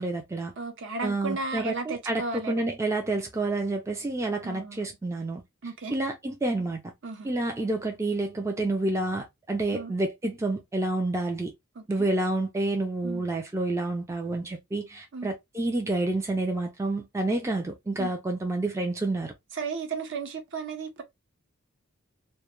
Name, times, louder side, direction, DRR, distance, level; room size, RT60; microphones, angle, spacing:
voice 1, 0.0-0.5 1.0-5.4 5.9-6.8 7.2-11.5 11.9-19.3, right 2 dB, 15° right, 0.3 m, -29 dB
voice 2, 0.6-2.6 4.4-4.8 5.6-6.0 7.0-7.3 9.7-9.9 11.8-12.1 13.0-13.2 15.1-15.3 18.0-18.1 19.5-21.0, right 4 dB, 60° right, 0.6 m, -34 dB
2.2 x 2.1 x 2.8 m
head